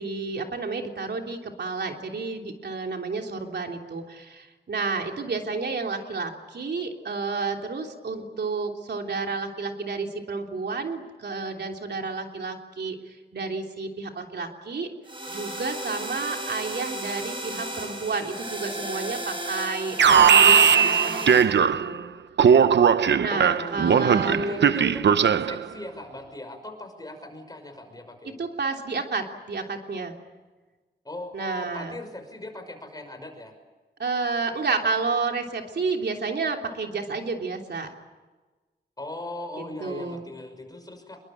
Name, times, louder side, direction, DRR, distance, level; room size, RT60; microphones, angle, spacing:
voice 1, 0.0-14.9 15.3-21.2 21.5-22.1 23.2-24.7 28.4-30.1 31.3-31.9 34.0-37.9 39.8-40.2, right 4 dB, 70° right, 3 dB, 3.3 m, -30 dB
sound 1, 15.0-21.4, right 1 dB, 30° right, 7.5 m, -34 dB
Alarm, 20.0-22.0 22.4-25.6, right 7 dB, 90° right, 0.8 m, -18 dB
voice 2, 23.3-28.3 31.0-33.5 39.0-41.2, left 2 dB, 20° left, 5 dB, 5.9 m, -38 dB
27.5 x 23.0 x 8.8 m, 1.3 s
wide cardioid pair, 140°, 18 cm